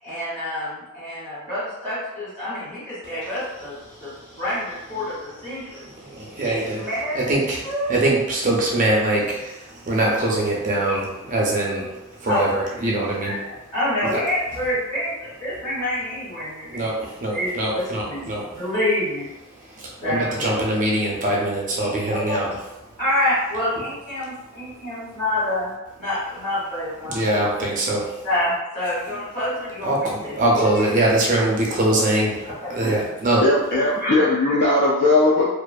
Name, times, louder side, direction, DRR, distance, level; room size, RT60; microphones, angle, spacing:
voice 1, 0.0-5.8 6.1-7.3 7.6-7.9 10.9-11.0 12.3-12.5 13.2-16.9 17.3-19.3 20.0-20.7 21.8-22.4 23.0-27.5 28.2-31.0 32.6-32.9, left 1 dB, 30° left, -11 dB, 1.5 m, -27 dB
voice 2, 5.9-6.8 7.1-7.6 7.9-13.4 14.1-14.2 16.7-18.5 19.7-22.5 27.0-28.2 29.9-33.4, right 1 dB, 35° right, -3 dB, 0.4 m, -23 dB
voice 3, 33.4-35.5, left 2 dB, 50° left, -5 dB, 0.3 m, -18 dB
2.4 x 2.4 x 2.2 m, 0.99 s
head